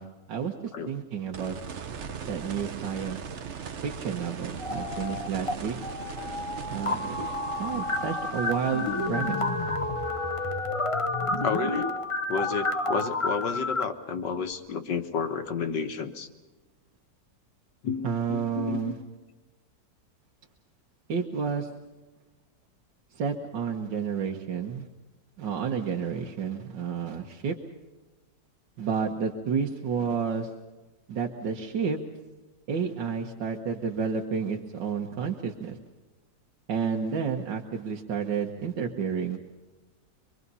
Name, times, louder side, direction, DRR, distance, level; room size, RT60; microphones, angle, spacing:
voice 1, 0.0-1.6 2.3-3.2 3.8-5.8 6.7-7.3 7.6-9.4 18.0-19.0 21.1-21.7 23.2-24.9 25.4-27.6 28.8-30.5 31.1-32.0 32.7-35.8 36.7-39.4, right 6 dB, 85° right, 1 dB, 1.9 m, -30 dB
sound 1, 1.3-12.2 14.5-14.6, right 6 dB, 50° right, 1.1 m, -40 dB
sound 2, 4.6-5.6 5.8-13.8, left 2 dB, 30° left, 0.6 m, -30 dB
voice 2, 11.4-11.9 12.3-16.3 17.8-18.8, left 5 dB, 75° left, 6 dB, 2.0 m, -31 dB
26.0 x 22.5 x 5.5 m, 1.2 s
omnidirectional pair, 1.9 m